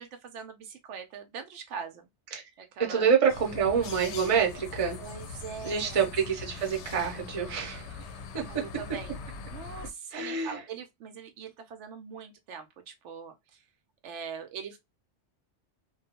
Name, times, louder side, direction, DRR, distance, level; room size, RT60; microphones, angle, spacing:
voice 1, 0.0-2.1 2.6-3.1 5.0-6.0 8.4-9.1 9.5-13.6 14.0-14.8, right 6 dB, 80° right, 0.9 m, -42 dB
voice 2, 2.9-5.0 5.6-8.0 8.3-8.6 10.1-10.6, right 7 dB, 35° right, 0.7 m, -27 dB
sound 1, 3.3-9.9, left 5 dB, 70° left, 0.8 m, -42 dB
2.3 x 2.2 x 2.8 m
omnidirectional pair, 1.2 m